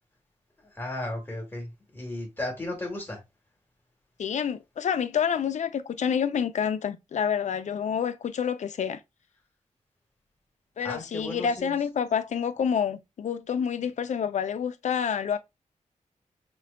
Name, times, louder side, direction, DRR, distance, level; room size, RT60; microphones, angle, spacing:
voice 1, 0.6-3.2 10.8-11.8, left 1 dB, 15° left, 1.5 m, -35 dB
voice 2, 4.2-9.0 10.8-15.4, left 7 dB, 65° left, 0.4 m, -28 dB
6.0 x 2.2 x 2.2 m
wide cardioid pair, 130°, 13 cm